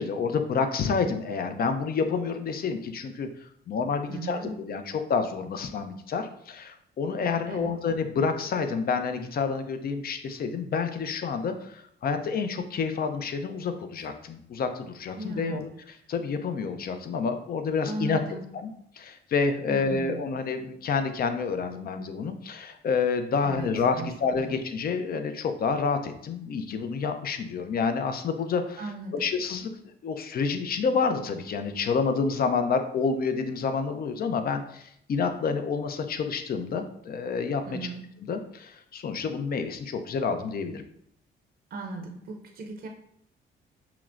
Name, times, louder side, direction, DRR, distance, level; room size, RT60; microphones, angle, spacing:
voice 1, 0.0-3.3 3.7-15.7 16.1-18.2 18.6-28.8 29.1-29.7 30.0-37.6 38.3-40.8, left 5 dB, 50° left, 8 dB, 0.5 m, -28 dB
voice 2, 4.1-4.6 7.5-7.7 15.2-15.6 17.8-18.4 19.7-20.2 23.4-24.6 28.8-29.3 37.6-38.0 41.7-42.9, right 3 dB, 50° right, 3 dB, 0.6 m, -37 dB
5.7 x 2.1 x 2.5 m, 0.71 s
cardioid pair, 90°, 20 cm